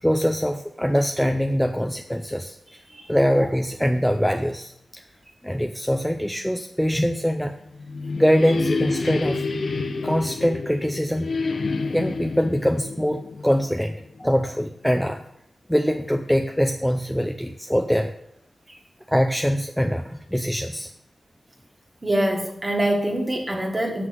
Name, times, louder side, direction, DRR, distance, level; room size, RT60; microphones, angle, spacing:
voice 1, 0.0-2.8 3.1-5.0 5.4-7.5 8.2-9.4 10.0-11.3 11.9-15.2 15.7-18.1 19.1-20.9, equal, ahead, 5 dB, 0.5 m, -23 dB
sound 1, 7.5-14.2, left 3 dB, 65° left, 0.9 m, -28 dB
voice 2, 22.0-24.1, right 1 dB, 20° right, 2 dB, 1.6 m, -24 dB
7.6 x 6.0 x 7.9 m, 0.75 s
wide cardioid pair, 140°, 0 cm